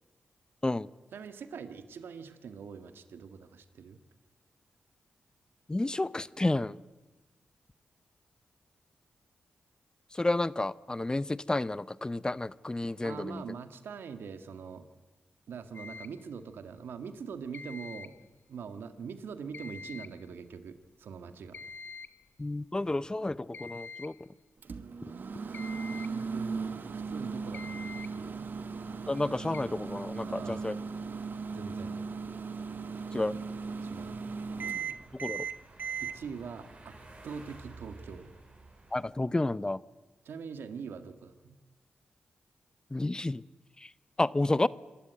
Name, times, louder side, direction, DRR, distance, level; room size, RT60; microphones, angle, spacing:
voice 1, 1.1-4.0 13.0-14.9 15.5-18.2 18.5-21.6 26.0-27.9 28.1-28.5 30.2-30.6 31.5-32.0 33.8-34.2 36.0-37.0 37.2-38.3 40.2-41.6, right 6 dB, 80° right, 9 dB, 1.6 m, -43 dB
voice 2, 5.7-6.8 10.1-13.4 22.4-24.1 29.1-30.8 33.1-33.4 35.1-35.5 38.9-39.8 42.9-43.4 43.8-43.9 44.2-44.7, left 2 dB, 20° left, 18 dB, 0.7 m, -31 dB
sound 1, 15.7-16.2 17.5-18.2 19.5-20.2 21.5-22.2 23.5-24.2 25.5-26.2 27.5-28.2 29.5-29.6, left 4 dB, 60° left, 1.1 m, -45 dB
Microwave oven, 24.6-36.1, right 5 dB, 60° right, 1.2 m, -37 dB
sound 2, 25.3-39.1, right 2 dB, 40° right, 6.3 m, -55 dB
26.0 x 13.0 x 9.3 m, 1.2 s
cardioid pair, 50°, 4 cm